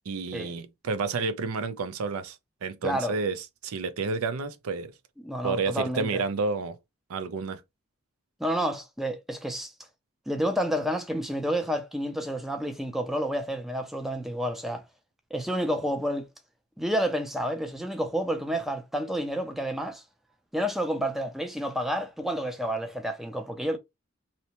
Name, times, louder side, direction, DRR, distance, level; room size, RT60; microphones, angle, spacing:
voice 1, 0.1-4.9 5.4-6.8 7.1-7.6, right 4 dB, 85° right, 0.4 m, -30 dB
voice 2, 2.8-3.2 5.2-6.2 8.4-9.7 10.3-14.8 15.3-16.3 16.8-20.0 20.5-23.8, equal, ahead, 0.3 m, -29 dB
2.8 x 2.1 x 2.8 m
head